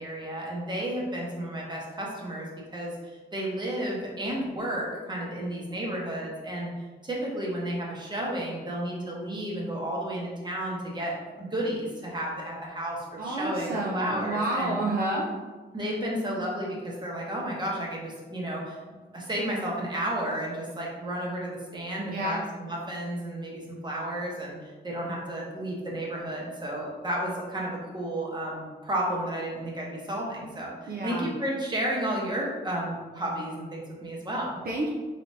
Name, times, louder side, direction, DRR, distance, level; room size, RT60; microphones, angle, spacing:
voice 1, 0.0-2.9 3.3-6.7 7.0-14.7 15.7-18.8 19.1-34.6, right 1 dB, 25° right, -3 dB, 1.0 m, -32 dB
voice 2, 13.2-15.3 22.1-22.4 30.9-31.3 34.7-34.9, right 1 dB, 55° right, -3 dB, 0.6 m, -29 dB
4.2 x 3.3 x 2.7 m, 1.3 s
wide cardioid pair, 115°, 18 cm